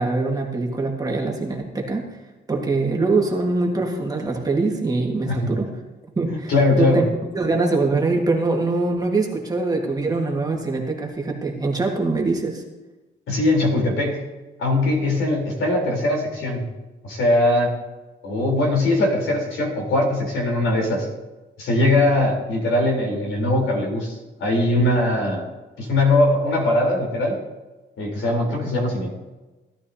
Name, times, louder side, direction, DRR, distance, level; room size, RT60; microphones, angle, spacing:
voice 1, 0.0-2.1 2.5-5.7 6.2-6.5 6.8-7.1 7.3-12.6, right 3 dB, 20° right, 0 dB, 1.7 m, -23 dB
voice 2, 6.5-7.0 13.3-14.2 14.6-16.7 17.0-17.8 18.2-21.1 21.6-25.5 25.8-27.4 28.0-29.1, left 2 dB, 85° left, 0 dB, 3.8 m, -21 dB
17.0 x 12.0 x 2.8 m, 1.1 s
wide cardioid pair, 150°, 20 cm